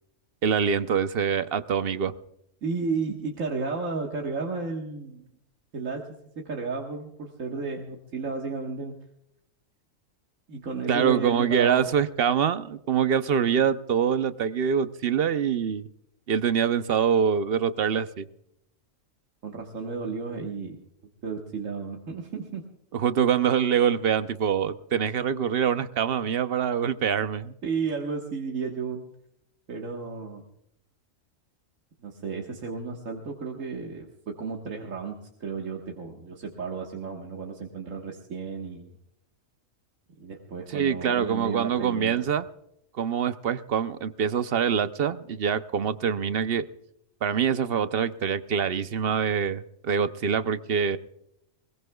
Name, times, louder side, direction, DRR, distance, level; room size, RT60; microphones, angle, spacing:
voice 1, 0.4-2.1 10.9-15.9 16.3-18.2 22.9-27.5 40.7-42.4 43.0-46.7 47.2-51.0, right 7 dB, 55° right, 12 dB, 0.8 m, -25 dB
voice 2, 2.6-5.3 5.7-6.1 6.4-9.0 10.5-11.9 19.4-20.8 21.2-22.7 27.6-29.1 29.7-30.5 32.0-39.0 40.2-42.2, right 4 dB, 75° right, 0 dB, 1.9 m, -33 dB
21.5 x 21.0 x 2.3 m, 0.79 s
omnidirectional pair, 1.4 m